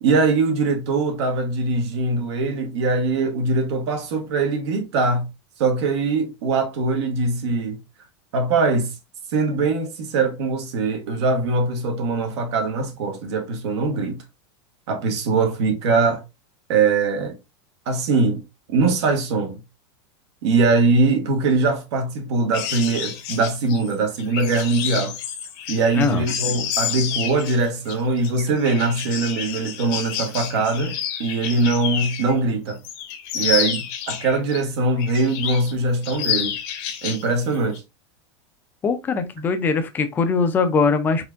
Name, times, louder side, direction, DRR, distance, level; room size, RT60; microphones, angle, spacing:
voice 1, 0.0-5.3 5.6-7.8 8.3-8.9 9.3-14.2 14.9-16.2 16.7-17.4 17.9-18.4 18.7-19.6 20.4-25.1 25.7-32.8 33.3-33.8 34.1-36.6 37.0-37.8, right 3 dB, 70° right, 1.3 m, -22 dB
sound 1, 22.5-32.3 32.7-34.6 35.0-35.7 36.0-37.3 37.5-37.8, left 9 dB, 40° left, 0.7 m, -29 dB
voice 2, 38.8-41.3, left 4 dB, 15° left, 0.4 m, -21 dB
4.3 x 3.4 x 2.5 m
supercardioid pair, 170°, 15 cm